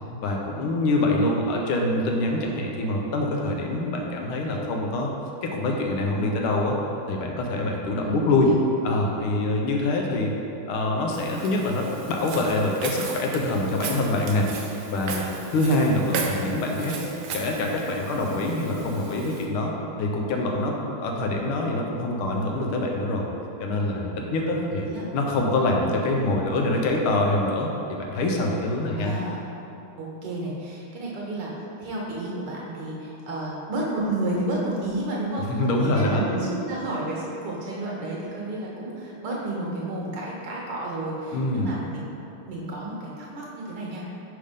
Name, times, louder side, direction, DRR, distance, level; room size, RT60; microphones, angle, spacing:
voice 1, 0.2-5.1 5.4-6.8 7.1-8.5 8.8-10.3 10.7-14.5 14.9-15.3 15.5-17.0 17.3-19.7 20.0-23.3 23.6-24.9 25.1-29.1 35.5-36.2 41.3-41.7, left 2 dB, 80° left, 0 dB, 1.6 m, -25 dB
voice 2, 8.0-8.6 24.3-25.0 28.8-29.4 30.0-31.5 31.8-42.1 42.5-44.0, right 1 dB, 60° right, -4 dB, 1.5 m, -31 dB
Walk footsteps, 11.1-19.5, right 4 dB, 85° right, 0.8 m, -36 dB
5.0 x 4.3 x 5.1 m, 2.9 s
omnidirectional pair, 2.3 m